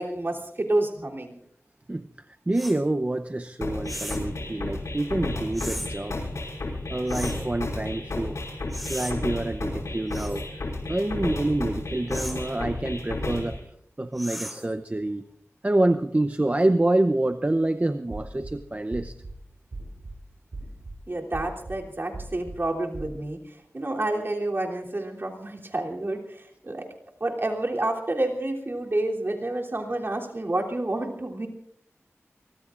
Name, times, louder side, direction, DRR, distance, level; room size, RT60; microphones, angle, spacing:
voice 1, 0.0-1.3 21.1-26.9 27.2-31.5, right 2 dB, 45° right, -1 dB, 3.2 m, -29 dB
voice 2, 1.9-6.2 6.9-8.4 8.9-10.4 10.9-13.6 14.0-15.2 15.6-19.1, right 1 dB, 30° right, 8 dB, 0.7 m, -27 dB
sound 1, 2.5-2.8 3.8-4.3 5.5-5.9 7.1-7.5 8.7-9.1 10.1-10.5 12.1-12.4 14.2-14.7, equal, ahead, 4.4 m, -36 dB
sound 2, 3.6-13.6, left 2 dB, 80° left, 5.5 m, -32 dB
sound 3, 18.1-18.5 18.9-19.3 19.7-20.1 20.5-20.9 21.3-21.8 22.1-22.6 22.9-23.1, right 2 dB, 70° right, 6.5 m, -37 dB
24.0 x 23.5 x 2.5 m, 0.70 s
wide cardioid pair, 50°, 5 cm